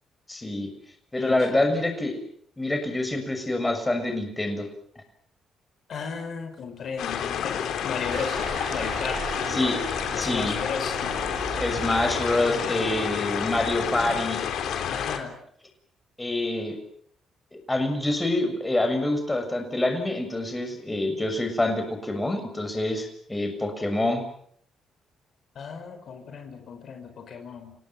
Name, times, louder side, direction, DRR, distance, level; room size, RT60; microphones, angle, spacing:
voice 1, 0.3-0.7 1.1-2.2 2.6-4.7 9.5-9.8 10.1-10.6 11.6-14.4 16.2-16.8 17.5-24.2, left 2 dB, 15° left, 6 dB, 6.7 m, -26 dB
voice 2, 1.2-1.7 5.9-8.4 8.7-9.2 10.2-11.0 14.9-15.4 25.5-27.7, left 6 dB, 60° left, 6 dB, 5.0 m, -35 dB
sound 1, 7.0-15.2, left 8 dB, 80° left, 3.5 m, -29 dB
sound 2, 8.1-13.2, right 5 dB, 50° right, 5.8 m, -38 dB
29.5 x 18.5 x 7.6 m, 0.63 s
cardioid pair, 90°, 0 cm